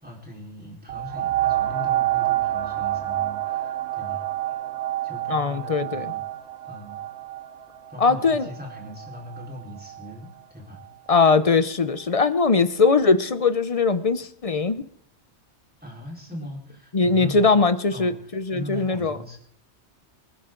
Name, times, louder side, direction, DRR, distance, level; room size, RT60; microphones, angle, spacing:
voice 1, 0.0-4.6 5.0-6.2 6.6-7.0 7.9-10.8 15.8-17.5 17.9-19.4, left 1 dB, 10° right, -2 dB, 4.2 m, -39 dB
sound 1, 0.9-10.1 10.8-10.9, right 13 dB, 70° right, 1.0 m, -28 dB
voice 2, 5.3-6.1 8.0-8.5 11.1-14.8 16.9-19.2, left 4 dB, 40° left, 13 dB, 0.6 m, -21 dB
26.0 x 11.0 x 3.8 m, 0.65 s
omnidirectional pair, 1.2 m